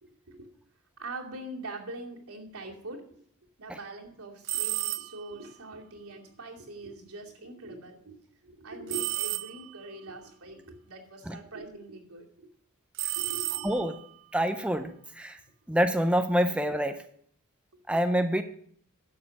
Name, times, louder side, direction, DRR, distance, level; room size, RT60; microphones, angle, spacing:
voice 1, 0.0-0.5 1.0-3.0 3.6-8.2 8.4-12.5 13.1-13.7 17.7-17.8, right 2 dB, 85° right, -1 dB, 2.5 m, -43 dB
sound 1, 4.4-5.4 8.9-9.9 12.9-14.1, right 16 dB, 60° right, 0.4 m, -33 dB
voice 2, 13.6-14.0 14.3-15.4 15.7-17.0 17.9-18.4, equal, 5° right, 7 dB, 0.5 m, -26 dB
11.5 x 6.8 x 5.9 m, 0.62 s
head